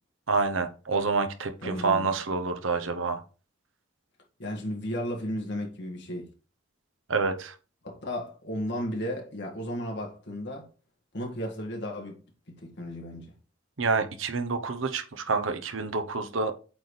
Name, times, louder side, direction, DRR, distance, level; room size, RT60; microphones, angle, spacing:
voice 1, 0.3-3.2 7.1-7.5 13.8-16.5, right 4 dB, 80° right, 0.9 m, -28 dB
voice 2, 1.6-2.1 4.4-6.3 7.8-10.7 11.1-12.2 12.5-13.3, equal, 60° left, 2.0 m, -34 dB
8.3 x 4.1 x 3.3 m
head